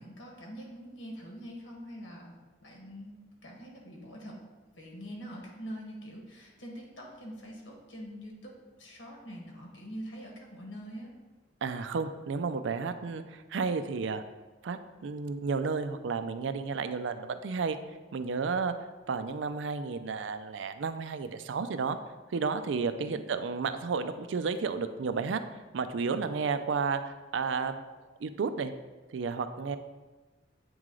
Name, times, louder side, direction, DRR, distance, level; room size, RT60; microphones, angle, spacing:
voice 1, 0.0-2.3 2.6-4.4 4.8-11.1 23.0-23.3, equal, 90° left, -1 dB, 1.4 m, -44 dB
voice 2, 11.6-14.2 14.6-17.8 18.1-18.7 19.1-22.0 22.3-25.4 25.7-27.8 28.2-28.7 29.1-29.8, right 5 dB, 75° right, 10 dB, 0.4 m, -32 dB
8.3 x 3.1 x 3.7 m, 1.2 s
head